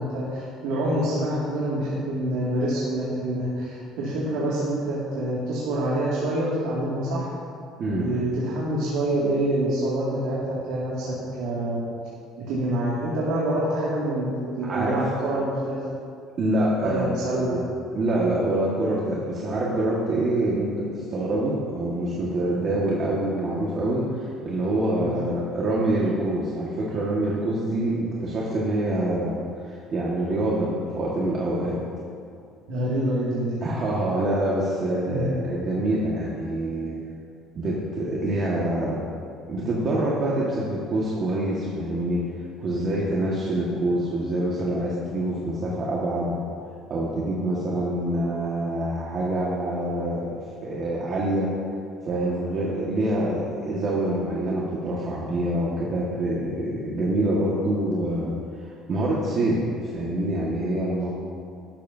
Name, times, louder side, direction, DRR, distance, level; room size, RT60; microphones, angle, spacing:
voice 1, 0.0-7.3 8.0-11.1 11.4-11.8 12.4-15.8 16.8-17.6 25.0-25.1 32.7-33.6 35.0-35.3, right 1 dB, 85° right, -7 dB, 2.2 m, -26 dB
voice 2, 14.6-15.0 16.4-17.6 17.9-31.8 33.6-37.0 37.5-39.0 39.5-42.2 42.6-46.4 46.9-50.3 50.6-51.5 52.0-58.4 58.9-61.1, right 1 dB, 45° right, -5 dB, 1.6 m, -26 dB
12.0 x 11.5 x 2.7 m, 2.3 s
cardioid pair, 115°, 0 cm